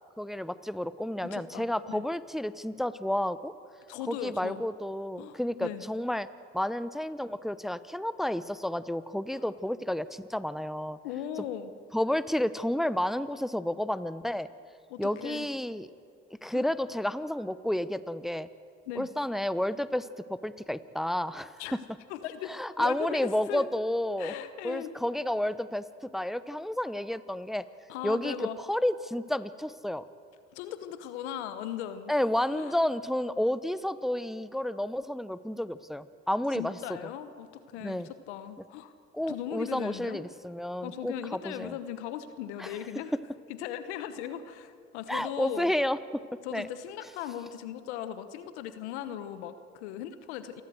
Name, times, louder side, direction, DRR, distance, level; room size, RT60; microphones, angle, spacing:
voice 1, 0.2-3.5 4.1-6.3 6.5-11.0 11.9-14.5 15.0-15.9 16.4-18.5 19.0-21.6 22.5-24.3 24.6-25.8 26.1-27.7 28.0-30.1 32.1-36.8 37.8-38.1 39.1-41.8 42.6-42.8 45.1-46.2 46.5-46.7, left 1 dB, ahead, 15 dB, 0.8 m, -31 dB
voice 2, 1.2-2.0 3.9-4.6 5.2-5.8 9.3-9.4 11.0-11.7 14.9-15.5 16.5-16.6 18.9-19.1 21.6-21.7 22.1-22.5 22.8-23.6 24.2-24.9 27.9-28.6 30.5-32.1 32.5-32.8 36.5-38.9 39.3-40.2 40.8-43.1 43.5-45.7 46.4-50.6, left 10 dB, 90° left, 11 dB, 1.2 m, -38 dB
28.0 x 12.5 x 7.8 m, 2.3 s
hypercardioid pair, 60°, 33 cm